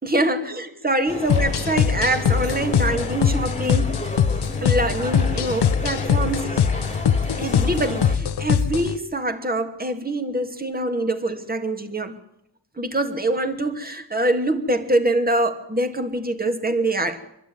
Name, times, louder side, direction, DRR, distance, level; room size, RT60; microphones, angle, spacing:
voice 1, 0.0-4.0 4.6-6.5 7.4-12.2 12.8-17.2, right 1 dB, 20° right, 5 dB, 2.5 m, -24 dB
sound 1, 1.1-8.2, left 1 dB, 15° left, 2.4 m, -33 dB
Sicily House Full, 1.3-9.0, left 7 dB, 70° left, 0.9 m, -22 dB
24.5 x 12.0 x 9.6 m, 0.79 s
cardioid pair, 60°, 41 cm